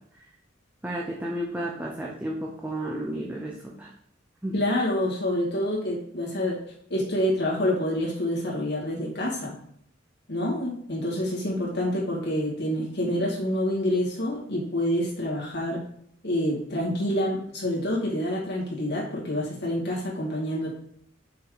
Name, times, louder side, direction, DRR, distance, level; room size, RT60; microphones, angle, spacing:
voice 1, 0.8-3.9 4.4-4.5, right 1 dB, 10° right, -3 dB, 0.7 m, -32 dB
voice 2, 4.5-6.6 6.9-9.5 10.3-15.8 16.2-20.7, left 1 dB, 55° left, -5 dB, 2.2 m, -27 dB
6.0 x 5.0 x 4.0 m, 0.69 s
head